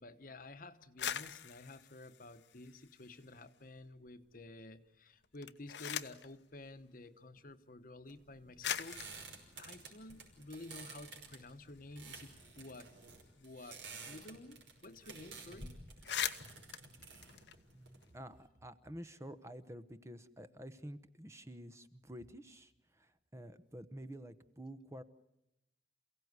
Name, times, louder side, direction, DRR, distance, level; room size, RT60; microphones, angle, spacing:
voice 1, 0.0-9.0 9.6-12.9 13.4-15.8, left 2 dB, 50° left, 10 dB, 1.2 m, -52 dB
sound 1, 0.8-3.4 3.8-4.4 5.2-6.3 7.4-7.5 8.2-8.3 8.6-10.9 11.3-11.4 11.6-14.3 14.5-14.6 14.9-15.2 15.5-15.6 15.9-18.1, left 9 dB, 75° left, 0.9 m, -43 dB
sound 2, 8.1-18.4, right 4 dB, 85° right, 5.6 m, -52 dB
voice 2, 17.7-25.0, equal, 15° right, 11 dB, 0.9 m, -50 dB
28.0 x 17.0 x 9.6 m, 0.87 s
head